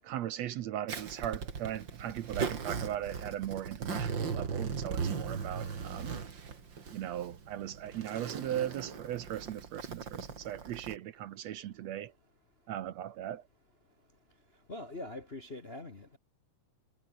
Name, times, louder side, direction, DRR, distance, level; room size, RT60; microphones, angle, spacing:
voice 1, 0.0-6.2 6.9-12.1 12.7-13.4, right 11 dB, 70° right, 2.0 m, -38 dB
Zipper (clothing), 0.9-11.0, right 6 dB, 40° right, 2.9 m, -38 dB
voice 2, 14.7-16.2, left 2 dB, 30° left, 1.2 m, -43 dB
omnidirectional pair, 3.5 m